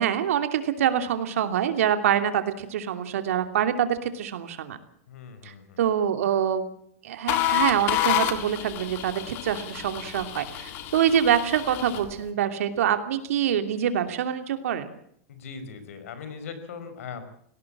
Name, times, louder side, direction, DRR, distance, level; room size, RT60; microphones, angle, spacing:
voice 1, 0.0-4.8 5.4-6.7 7.0-14.9, right 9 dB, 75° right, 8 dB, 2.9 m, -25 dB
voice 2, 5.1-5.8 15.3-17.2, left 6 dB, 75° left, 11 dB, 5.1 m, -40 dB
sound 1, 7.3-12.1, left 12 dB, 30° left, 1.9 m, -29 dB
19.5 x 18.0 x 8.7 m, 0.67 s
supercardioid pair, 170°, 8 cm